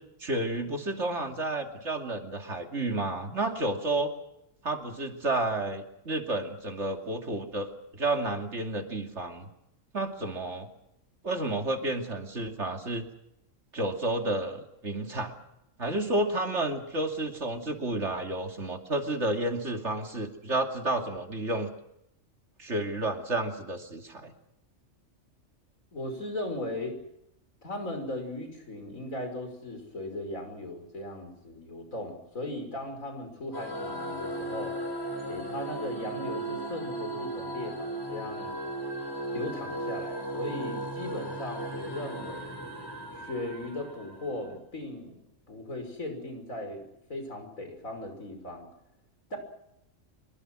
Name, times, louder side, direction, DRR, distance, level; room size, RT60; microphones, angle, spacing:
voice 1, 0.2-4.1 4.6-9.5 9.9-10.7 11.2-13.0 13.7-15.3 15.8-21.7 22.6-24.3, right 2 dB, 60° right, 4 dB, 3.0 m, -31 dB
voice 2, 25.9-27.0 27.6-34.7 35.3-38.6 39.3-42.5 43.2-45.2 45.5-48.7 49.3-49.4, left 1 dB, 80° left, 5 dB, 6.1 m, -37 dB
sound 1, 33.5-44.4, right 1 dB, 15° left, 6.0 m, -36 dB
25.0 x 23.5 x 6.3 m, 0.80 s
omnidirectional pair, 1.4 m